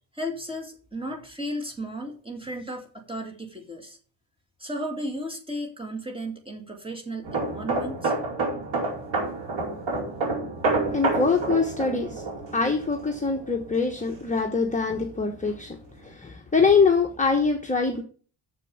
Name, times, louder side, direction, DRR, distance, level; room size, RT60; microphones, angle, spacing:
voice 1, 0.1-4.0 4.6-8.1, equal, 10° right, 3 dB, 2.4 m, -34 dB
sound 1, 7.2-14.7 15.0-15.3, right 3 dB, 70° right, 4.6 m, -29 dB
voice 2, 10.9-12.2 12.5-15.8 16.0-18.0, left 4 dB, 15° left, 1 dB, 1.1 m, -23 dB
7.1 x 6.8 x 7.1 m, 0.41 s
cardioid pair, 115°, 45 cm